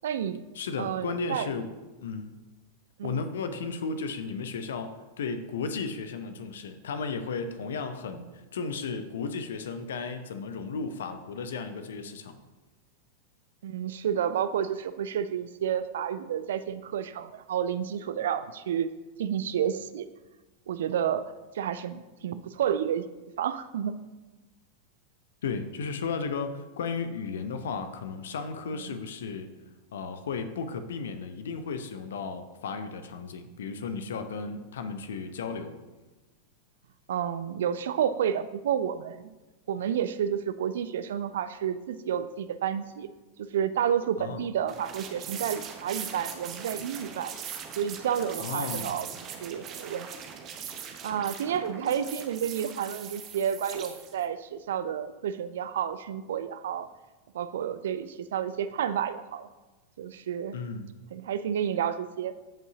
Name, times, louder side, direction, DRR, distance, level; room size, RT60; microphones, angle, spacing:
voice 1, 0.0-0.4 0.8-1.5 3.0-3.2 13.6-18.9 19.2-20.1 20.7-21.2 21.5-23.0 23.4-24.0 28.9-29.0 37.1-39.3 39.7-43.1 43.4-47.3 47.8-49.1 49.4-50.1 51.0-56.9 57.3-59.5 60.0-60.5 61.1-62.3, right 9 dB, 60° right, 13 dB, 0.5 m, -30 dB
voice 2, 0.5-1.7 2.0-2.4 3.0-12.4 25.4-29.5 29.9-35.8 44.2-44.5 48.4-49.0 60.5-60.9, left 5 dB, 60° left, 9 dB, 0.8 m, -34 dB
sound 1, 44.7-54.2, right 7 dB, 35° right, 1.0 m, -40 dB
14.5 x 5.5 x 2.8 m, 1.2 s
figure-of-eight pair, 90°, 0 cm